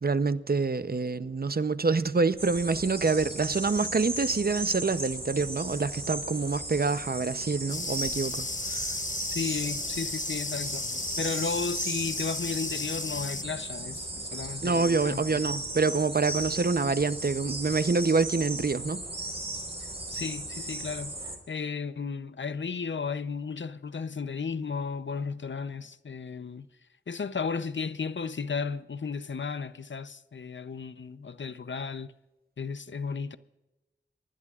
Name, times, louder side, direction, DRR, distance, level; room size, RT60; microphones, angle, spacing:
voice 1, 0.0-8.9 14.6-19.0, right 4 dB, 55° right, 0.7 m, -26 dB
sound 1, 2.4-21.4, right 1 dB, 30° right, 4.2 m, -36 dB
sound 2, 7.7-13.4, left 4 dB, 40° left, 0.6 m, -35 dB
voice 2, 9.3-15.4 20.1-21.1 21.5-26.7 27.1-32.1 32.6-33.4, left 5 dB, 75° left, 0.7 m, -34 dB
25.5 x 19.5 x 2.4 m
wide cardioid pair, 45°, 19 cm